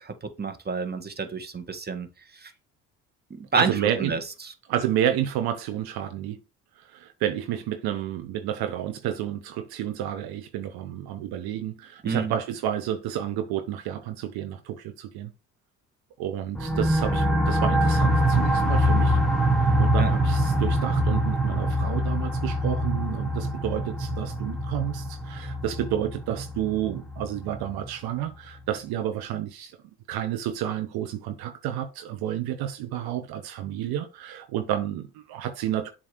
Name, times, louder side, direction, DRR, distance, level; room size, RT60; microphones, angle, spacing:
voice 1, 0.0-2.5 3.3-4.5 12.0-12.4 20.0-20.1, right 4 dB, 25° right, 1.6 m, -30 dB
voice 2, 3.6-4.1 4.7-6.4 6.8-15.3 16.2-19.2 19.8-29.8 30.1-35.9, right 11 dB, 70° right, 1.0 m, -30 dB
sound 1, 16.6-27.9, equal, ahead, 1.5 m, -24 dB
7.5 x 3.1 x 6.1 m
hypercardioid pair, 60°, 38 cm